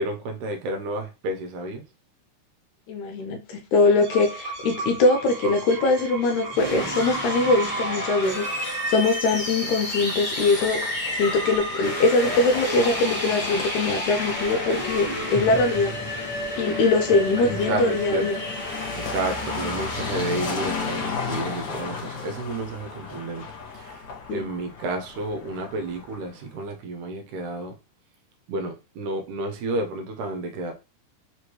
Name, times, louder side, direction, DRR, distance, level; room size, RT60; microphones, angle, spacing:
voice 1, 0.0-1.8 17.1-18.3 19.0-23.5 23.7-24.1 24.3-27.7 28.5-30.7, right 2 dB, 75° right, 2.1 m, -31 dB
voice 2, 2.9-15.9 16.6-18.4 24.3-24.5, left 3 dB, 75° left, 1.9 m, -22 dB
sound 1, 3.8-9.2, right 3 dB, 60° right, 2.2 m, -37 dB
sound 2, 6.5-20.7, equal, 25° left, 0.7 m, -30 dB
sound 3, 9.4-26.4, left 5 dB, 55° left, 1.8 m, -35 dB
4.9 x 3.1 x 3.0 m
omnidirectional pair, 3.8 m